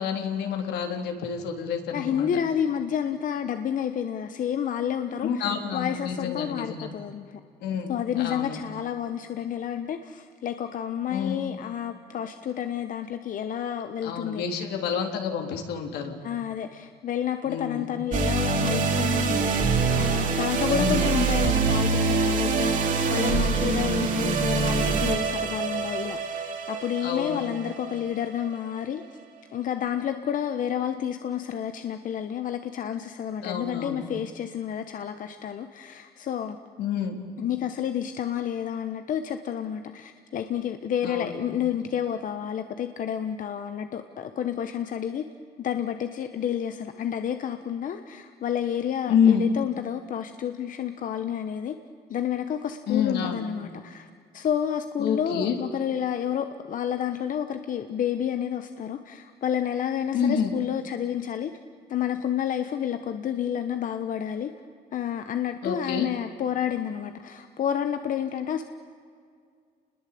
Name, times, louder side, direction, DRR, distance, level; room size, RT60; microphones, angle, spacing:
voice 1, 0.0-2.4 5.2-6.9 7.6-8.6 11.1-11.4 14.0-16.2 17.4-17.9 20.7-21.2 27.0-27.4 33.4-34.1 36.8-37.2 41.0-41.4 49.1-49.5 52.9-53.4 55.0-55.6 60.1-60.5 65.6-66.1, left 7 dB, 75° left, 4 dB, 3.6 m, -28 dB
voice 2, 1.9-7.4 7.9-14.6 16.2-29.0 29.5-36.6 37.4-45.2 45.6-51.8 52.1-54.1 54.3-61.5 61.9-64.5 64.9-68.7, left 9 dB, 50° left, 8 dB, 1.3 m, -30 dB
sound 1, 18.1-28.5, right 4 dB, 50° right, 4.1 m, -25 dB
29.0 x 21.0 x 8.6 m, 2.2 s
cardioid pair, 110°, 17 cm